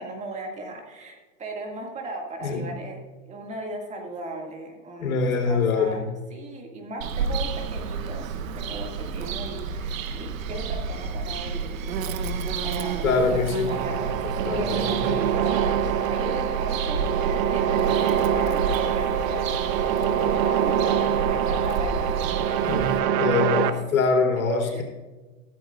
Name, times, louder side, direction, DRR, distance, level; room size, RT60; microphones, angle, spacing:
voice 1, 0.0-5.2 5.5-11.9 12.6-17.0 17.5-22.1 23.6-23.8 24.6-24.8, right 2 dB, 15° right, 1 dB, 2.1 m, -37 dB
voice 2, 5.0-6.0 13.0-13.9 14.2-15.3 22.6-24.8, left 4 dB, 85° left, 2 dB, 3.7 m, -24 dB
Bird vocalization bird call bird song, 7.0-23.0, right 5 dB, 70° right, 1.3 m, -30 dB
sound 1, 13.7-23.7, right 9 dB, 35° right, 0.9 m, -25 dB
15.0 x 14.0 x 2.5 m, 1.2 s
hypercardioid pair, 140°, 41 cm